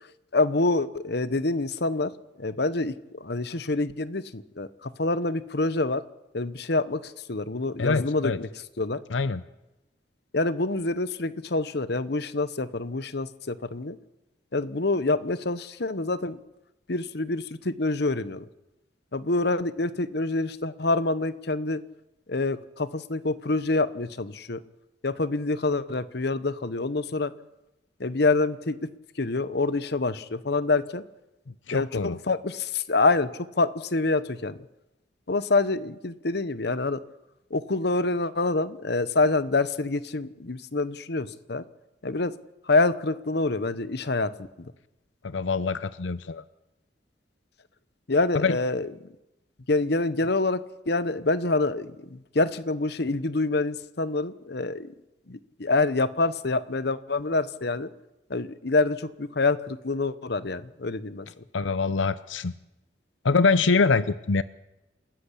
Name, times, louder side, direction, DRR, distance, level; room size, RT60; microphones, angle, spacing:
voice 1, 0.3-6.0 6.3-8.5 8.8-9.0 10.3-14.0 14.5-16.4 16.9-18.5 19.1-21.8 22.3-24.6 25.0-27.3 28.0-28.8 29.2-31.0 31.7-33.3 33.6-34.6 35.3-37.0 37.5-41.6 42.0-42.3 42.7-44.3 44.6-44.7 48.1-48.9 49.7-54.9 55.3-57.9 58.3-61.3, left 3 dB, 60° left, 15 dB, 1.0 m, -26 dB
voice 2, 7.8-8.4 9.1-9.4 31.7-32.2 45.2-46.4 48.4-48.6 61.5-62.5 63.2-64.4, left 4 dB, 90° left, 15 dB, 0.7 m, -24 dB
28.0 x 14.0 x 8.5 m, 0.95 s
head